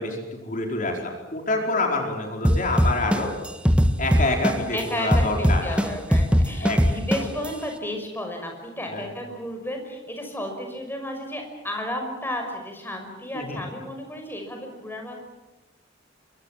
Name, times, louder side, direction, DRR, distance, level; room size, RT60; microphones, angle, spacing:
voice 1, 0.0-3.3 4.0-5.8 6.6-6.8 7.2-7.3 8.9-9.1 13.3-13.6, left 2 dB, 45° left, 2 dB, 4.8 m, -27 dB
sound 1, 2.4-4.8 5.1-7.5, equal, 5° right, 1.6 m, -19 dB
voice 2, 4.7-15.2, left 1 dB, 10° left, 3 dB, 5.7 m, -33 dB
26.5 x 24.0 x 7.5 m, 1.1 s
head